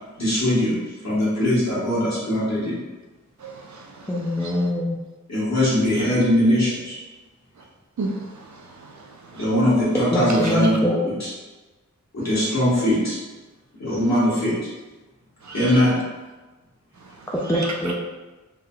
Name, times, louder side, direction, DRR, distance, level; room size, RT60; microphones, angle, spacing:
voice 1, 0.2-0.8 1.0-2.8 5.3-7.0 9.3-10.8 11.2-11.3 12.1-13.2 13.8-14.5 15.5-15.9, left 1 dB, 55° left, -9 dB, 1.5 m, -20 dB
voice 2, 3.4-4.1 4.4-4.5 8.0-9.0 9.3-9.5 10.3-10.5 15.4-15.8 17.5-17.7, right 3 dB, 60° right, 1 dB, 0.5 m, -33 dB
voice 3, 4.1-5.0 10.1-11.0 17.3-17.9, left 1 dB, 10° left, -3 dB, 0.4 m, -23 dB
3.3 x 2.5 x 2.3 m, 1.2 s
wide cardioid pair, 55°, 32 cm